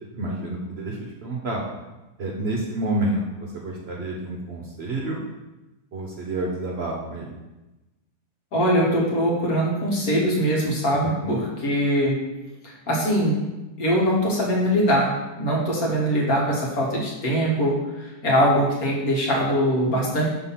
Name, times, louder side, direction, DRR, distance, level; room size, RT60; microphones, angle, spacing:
voice 1, 0.1-1.6 2.2-5.2 5.9-7.3 11.0-11.4 15.8-16.0, right 1 dB, 50° right, -1 dB, 0.9 m, -29 dB
voice 2, 8.5-12.2 12.6-13.4 13.8-20.3, equal, 65° left, -3 dB, 1.9 m, -22 dB
5.7 x 3.7 x 5.6 m, 1.0 s
omnidirectional pair, 1.7 m